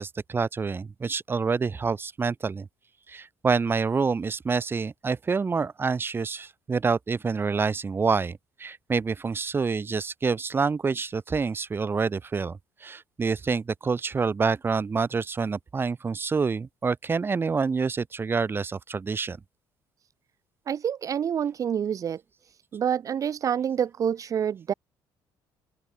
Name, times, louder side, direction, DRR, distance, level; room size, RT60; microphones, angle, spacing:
voice 1, 0.0-2.7 3.1-19.4, right 5 dB, 25° right, 1.0 m, -27 dB
voice 2, 20.7-22.2 22.7-24.7, right 8 dB, 40° right, 0.5 m, -27 dB
open air
cardioid pair, 110°, 9 cm